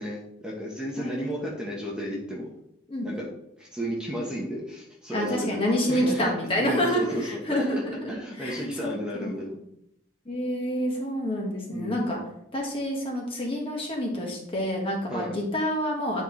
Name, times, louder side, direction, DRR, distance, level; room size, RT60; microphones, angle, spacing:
voice 1, 0.0-2.5 3.0-3.3 3.6-5.6 5.9-6.3 6.6-7.7 8.1-9.5 11.7-12.1 15.1-15.4, equal, 5° right, -4 dB, 1.1 m, -33 dB
voice 2, 1.0-1.4 2.9-3.1 5.1-8.1 8.4-9.4 10.2-12.2 12.5-16.2, equal, 30° left, -1 dB, 1.5 m, -28 dB
9.6 x 4.4 x 3.2 m, 0.77 s
head